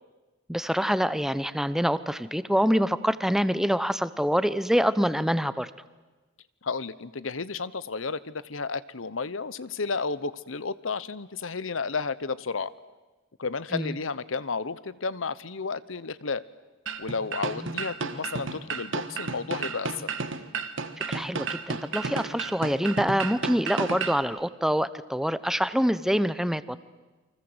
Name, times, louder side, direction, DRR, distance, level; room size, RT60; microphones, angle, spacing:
voice 1, 0.5-5.7 13.7-14.0 17.5-17.7 21.1-26.6, equal, ahead, 14 dB, 0.8 m, -25 dB
voice 2, 6.6-12.7 13.4-16.4 17.0-20.1, left 4 dB, 90° left, 17 dB, 1.0 m, -32 dB
sound 1, 16.9-24.2, right 4 dB, 70° right, 1.6 m, -32 dB
29.0 x 24.5 x 8.0 m, 1.2 s
head